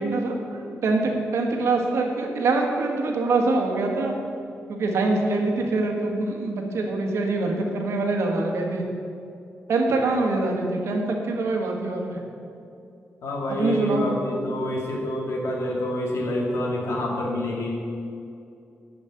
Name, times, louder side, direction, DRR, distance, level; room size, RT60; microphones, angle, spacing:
voice 1, 0.0-4.1 4.7-8.8 9.7-12.2 13.5-14.1, right 3 dB, 80° right, 2 dB, 1.5 m, -24 dB
voice 2, 13.2-17.7, left 1 dB, 75° left, -1 dB, 2.1 m, -27 dB
10.5 x 5.3 x 7.8 m, 2.5 s
wide cardioid pair, 140°, 5 cm